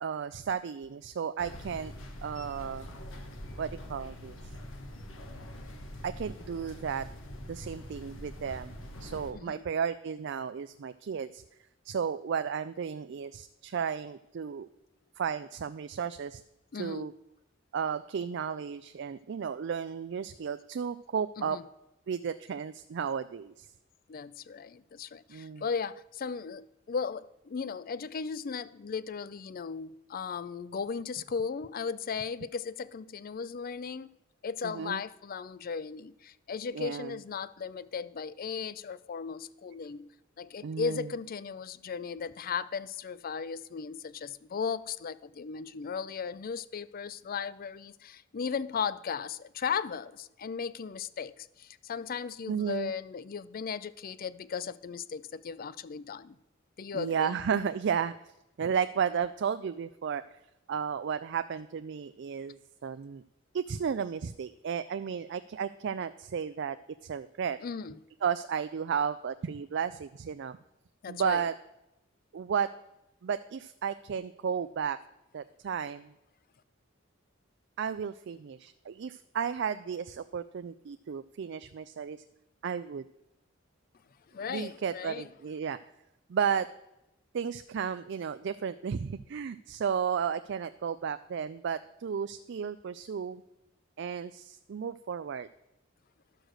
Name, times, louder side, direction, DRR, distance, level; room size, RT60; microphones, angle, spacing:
voice 1, 0.0-1.9 2.2-2.9 3.6-4.3 6.0-7.1 7.5-8.7 9.0-11.4 11.9-14.7 15.2-16.4 16.8-17.1 17.7-21.6 22.1-23.7 25.3-25.6 34.6-35.0 36.7-37.2 40.6-41.1 52.5-52.9 56.9-58.1 58.6-60.2 60.7-63.2 63.5-66.8 67.0-67.6 68.2-70.6 71.1-71.5 72.3-72.7 73.2-75.0 75.3-76.1 77.8-82.2 82.6-83.0 84.5-85.8 86.3-86.7 87.3-93.4 94.0-95.5, right 7 dB, 65° right, 0.4 m, -33 dB
sound 1, 1.4-9.3, left 1 dB, 80° left, 1.4 m, -44 dB
voice 2, 9.3-9.7 16.7-17.1 21.4-21.7 24.1-34.1 34.4-56.4 56.8-57.4 67.6-68.0 71.0-71.4 84.3-85.3, left 6 dB, 45° left, 0.4 m, -36 dB
12.0 x 6.5 x 6.2 m
head